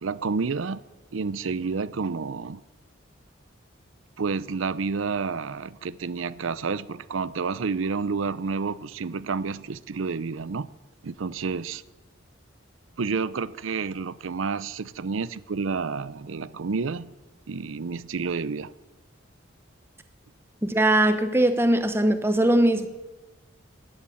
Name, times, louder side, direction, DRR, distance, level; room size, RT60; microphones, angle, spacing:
voice 1, 0.0-0.8 1.1-2.6 4.2-10.7 11.0-11.8 13.0-17.1 17.5-18.7, right 4 dB, 90° right, 0.6 m, -29 dB
voice 2, 20.6-22.9, right 1 dB, 10° right, 0.9 m, -20 dB
13.0 x 8.9 x 9.3 m
head